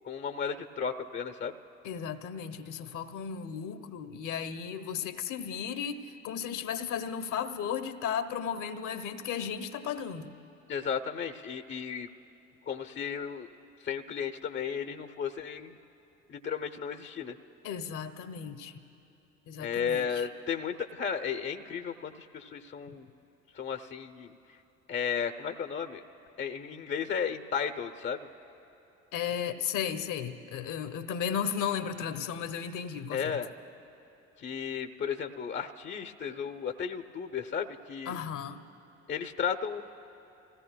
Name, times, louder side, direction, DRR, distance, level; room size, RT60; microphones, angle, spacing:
voice 1, 0.0-1.5 10.7-12.1 12.7-13.5 13.8-15.8 16.3-17.3 19.6-23.1 23.5-24.3 24.9-26.0 26.4-28.3 33.1-33.5 34.4-38.2 39.1-39.8, left 7 dB, 30° left, 7 dB, 0.9 m, -34 dB
voice 2, 1.8-10.3 17.6-18.8 19.5-20.3 22.9-23.0 29.1-33.4 38.0-38.6, left 8 dB, 50° left, 8 dB, 1.2 m, -35 dB
30.0 x 16.5 x 2.3 m, 2.9 s
figure-of-eight pair, 50°, 39 cm